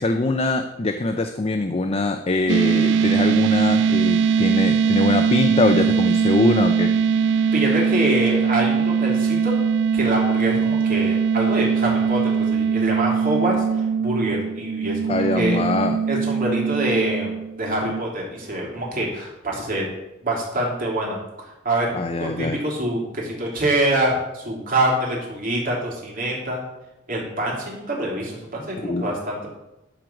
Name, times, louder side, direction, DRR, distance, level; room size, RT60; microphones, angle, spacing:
voice 1, 0.0-6.9 15.1-16.0 21.9-22.6 28.8-29.1, left 2 dB, 30° left, 7 dB, 0.5 m, -23 dB
sound 1, 2.5-18.0, right 6 dB, 65° right, 0.4 m, -21 dB
voice 2, 7.5-9.5 9.9-15.6 16.1-17.3 17.6-19.9 20.2-21.9 22.2-26.6 27.1-29.5, right 1 dB, 45° right, -3 dB, 3.2 m, -25 dB
12.5 x 4.6 x 6.3 m, 0.95 s
head